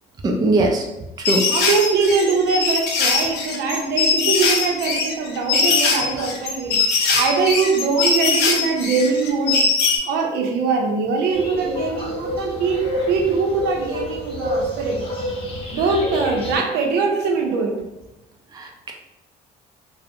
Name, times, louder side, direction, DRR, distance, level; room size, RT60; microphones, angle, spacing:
voice 1, 0.2-0.8 1.3-1.5 18.5-18.9, right 2 dB, 25° right, 1 dB, 0.4 m, -20 dB
sound 1, 1.3-10.0, left 4 dB, 80° left, 0.5 m, -21 dB
voice 2, 1.5-9.6 10.0-15.0 15.7-17.8, right 4 dB, 80° right, 1 dB, 0.6 m, -22 dB
sound 2, 11.3-16.6, left 1 dB, 35° left, 0.7 m, -28 dB
2.5 x 2.0 x 2.5 m, 0.92 s
cardioid pair, 110°, 17 cm